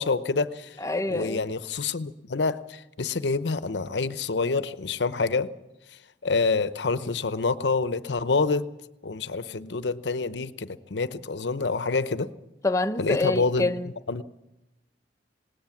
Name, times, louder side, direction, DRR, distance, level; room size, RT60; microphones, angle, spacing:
voice 1, 0.0-0.8 1.1-5.5 6.2-8.7 9.0-12.3 13.0-13.7 14.1-14.2, left 4 dB, 80° left, 0.8 m, -27 dB
voice 2, 0.8-1.4 12.6-13.9, left 2 dB, 15° left, 0.7 m, -26 dB
19.5 x 18.5 x 7.2 m
head